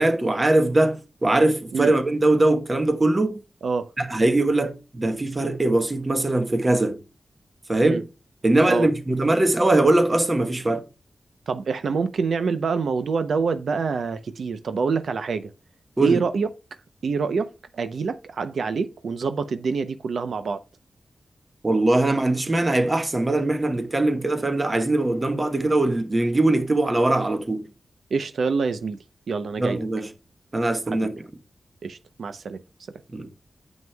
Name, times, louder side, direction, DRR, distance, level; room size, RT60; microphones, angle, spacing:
voice 1, 0.0-3.4 4.0-7.0 7.7-8.0 8.4-10.8 16.0-16.2 21.6-27.7 29.6-30.0 30.5-31.2 33.1-33.3, right 2 dB, 20° right, 1.1 m, -21 dB
voice 2, 3.6-3.9 7.8-8.0 8.7-8.9 11.5-15.5 16.0-16.5 17.0-20.6 28.1-29.0 29.3-29.8 30.9-31.1 31.8-32.6, right 5 dB, 75° right, 0.6 m, -26 dB
9.5 x 7.2 x 2.3 m
wide cardioid pair, 175°, 0 cm